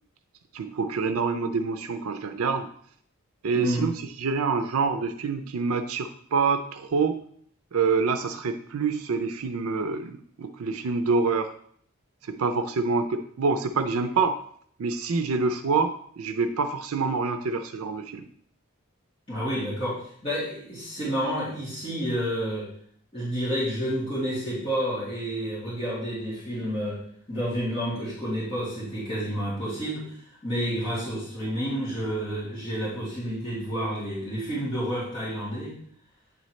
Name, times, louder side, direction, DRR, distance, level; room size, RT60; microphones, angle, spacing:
voice 1, 0.5-2.7 3.4-7.2 7.7-11.5 12.2-14.4 14.8-18.3, right 4 dB, 85° right, 8 dB, 0.5 m, -26 dB
voice 2, 3.5-3.9 19.3-22.7 23.1-27.0 27.3-35.7, equal, 25° left, -11 dB, 2.5 m, -30 dB
9.1 x 4.0 x 3.1 m, 0.62 s
head